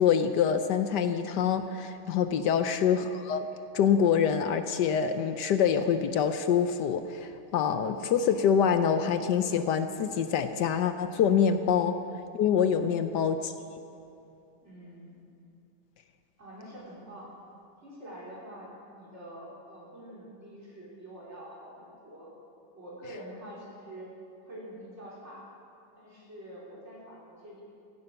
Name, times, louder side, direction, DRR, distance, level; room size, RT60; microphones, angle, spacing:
voice 1, 0.0-3.5 3.7-12.0 12.3-13.5, left 7 dB, 70° left, 9 dB, 1.1 m, -25 dB
voice 2, 14.6-15.1 16.4-17.3 17.8-22.3 22.7-24.1 24.4-25.4 26.0-27.6, right 1 dB, 30° right, -6 dB, 4.6 m, -46 dB
16.0 x 15.0 x 5.7 m, 2.7 s
omnidirectional pair, 2.3 m